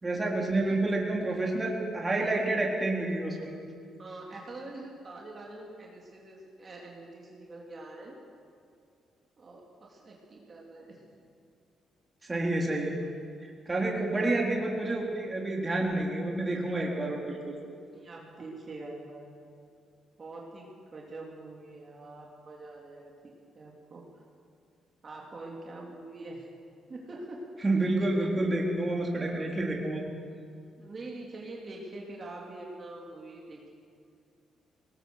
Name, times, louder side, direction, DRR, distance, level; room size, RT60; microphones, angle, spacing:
voice 1, 0.0-3.5 12.3-13.0 13.4-17.6 27.6-30.0, right 2 dB, 20° right, -1 dB, 3.8 m, -29 dB
voice 2, 4.0-8.2 9.4-11.1 14.1-14.3 17.9-19.3 20.2-24.0 25.0-26.5 26.9-27.5 29.2-29.4 30.8-33.7, right 2 dB, 40° right, -2 dB, 3.4 m, -44 dB
20.5 x 19.5 x 6.6 m, 2.4 s
cardioid pair, 90°, 0 cm